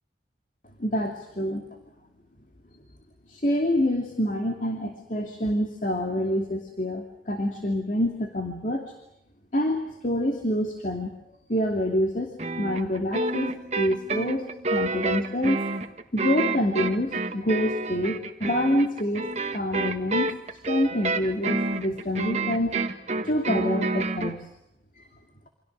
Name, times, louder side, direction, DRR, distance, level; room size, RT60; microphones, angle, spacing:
voice 1, 0.8-1.7 3.3-8.8 9.5-11.1 11.5-15.6 16.1-20.3 20.6-22.8 23.2-24.4 25.0-25.1, left 1 dB, 45° left, 3 dB, 2.6 m, -27 dB
sound 1, 12.4-24.3, right 3 dB, 40° right, 1.6 m, -29 dB
29.0 x 26.0 x 6.5 m, 0.82 s
head